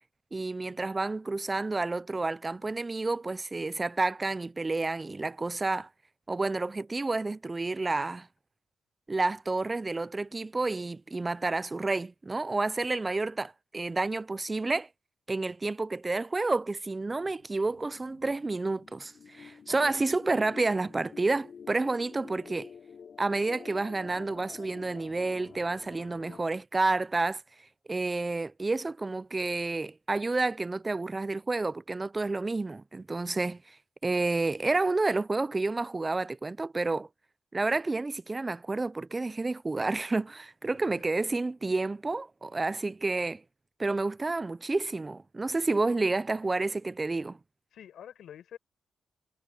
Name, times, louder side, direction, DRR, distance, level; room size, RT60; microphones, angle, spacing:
voice 1, 0.3-5.9 6.3-8.3 9.1-14.9 15.3-22.7 23.2-27.4 27.9-33.8 34.0-37.1 37.5-43.4 43.8-47.4, right 3 dB, 25° right, 0.5 m, -30 dB
sound 1, 17.1-26.4, left 6 dB, 60° left, 4.2 m, -50 dB
voice 2, 19.7-20.0 40.7-41.1 47.7-48.6, left 10 dB, 80° left, 4.8 m, -48 dB
cardioid pair, 70°, 0 cm